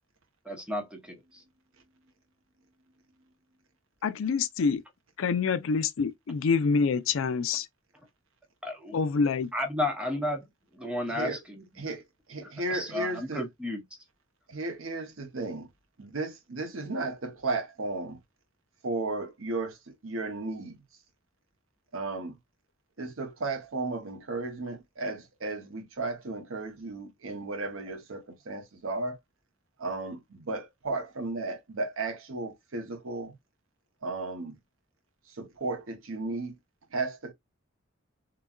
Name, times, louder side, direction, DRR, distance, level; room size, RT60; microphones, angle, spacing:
voice 1, 0.5-1.4 8.6-9.0 9.5-10.5 10.7-11.9 12.4-13.8, left 1 dB, 5° right, 0.8 m, -33 dB
voice 2, 4.0-4.8 5.2-7.7 8.9-9.5, left 5 dB, 70° left, 0.4 m, -26 dB
voice 3, 11.1-11.4 11.8-13.5 14.5-15.7 16.0-18.2 18.8-20.8 21.9-22.4 23.0-29.2 29.8-33.3 34.0-34.6 35.3-36.6 36.9-37.3, right 2 dB, 80° right, 0.8 m, -34 dB
3.9 x 2.2 x 2.3 m
head